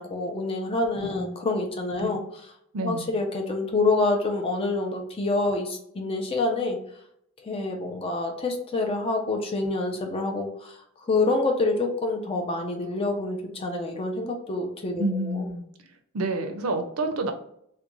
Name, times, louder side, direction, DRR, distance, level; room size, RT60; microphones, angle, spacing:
voice 1, 0.0-2.5 2.8-6.8 7.4-15.5, left 2 dB, 25° left, 2 dB, 0.5 m, -27 dB
voice 2, 2.7-3.1 15.0-15.6 16.1-17.3, right 2 dB, 80° right, 5 dB, 0.5 m, -28 dB
2.4 x 2.2 x 3.0 m, 0.72 s
head